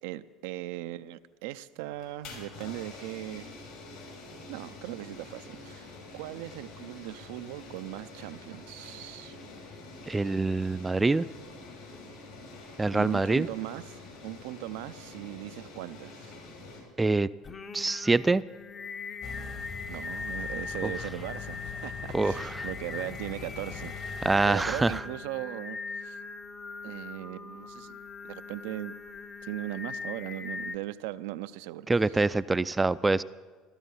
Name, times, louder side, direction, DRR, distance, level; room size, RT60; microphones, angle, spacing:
voice 1, 0.0-3.5 4.5-9.4 12.9-14.0 14.2-16.3 19.9-26.2 26.8-29.0 29.4-32.3, right 15 dB, 75° right, 12 dB, 0.5 m, -39 dB
sound 1, 1.9-16.8, left 3 dB, 70° left, 5.6 m, -47 dB
voice 2, 10.1-11.3 12.8-13.5 17.0-17.3 17.7-18.4 22.1-22.7 24.2-25.0 31.9-33.2, right 3 dB, 15° right, 16 dB, 0.4 m, -25 dB
Singing, 17.4-30.8, left 4 dB, 35° left, 0.9 m, -40 dB
sound 2, 19.2-25.0, left 5 dB, 50° left, 2.0 m, -42 dB
14.5 x 13.0 x 5.6 m, 1.5 s
hypercardioid pair, 70°, 0 cm